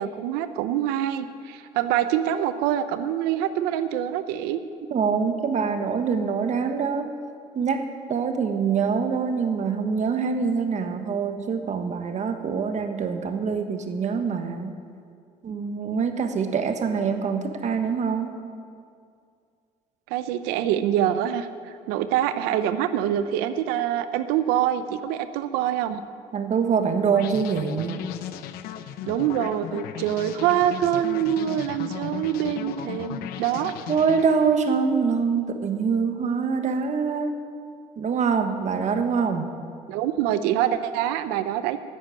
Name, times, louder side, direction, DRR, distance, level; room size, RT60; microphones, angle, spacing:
voice 1, 0.0-4.6 20.1-26.0 29.1-33.7 39.9-41.8, right 11 dB, 85° right, 11 dB, 0.6 m, -25 dB
voice 2, 4.9-7.1 7.5-7.8 8.1-14.7 15.4-18.4 26.3-28.0 33.9-37.4 38.0-39.5, right 5 dB, 50° right, 7 dB, 1.4 m, -24 dB
sound 1, 27.1-34.8, left 10 dB, 75° left, 0.7 m, -36 dB
10.5 x 8.3 x 9.1 m, 2.3 s
supercardioid pair, 80°, 16 cm